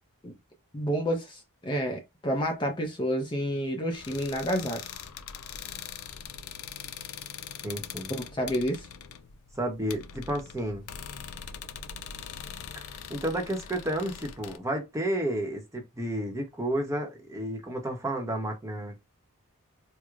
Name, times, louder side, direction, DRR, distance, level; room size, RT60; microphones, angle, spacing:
voice 1, 0.7-4.8 8.1-8.9, equal, 20° left, 0.6 m, -29 dB
sound 1, 3.9-14.6, left 7 dB, 80° left, 0.4 m, -42 dB
voice 2, 7.6-8.1 9.6-10.8 12.7-18.9, right 1 dB, 15° right, 0.8 m, -31 dB
4.5 x 2.1 x 2.4 m
head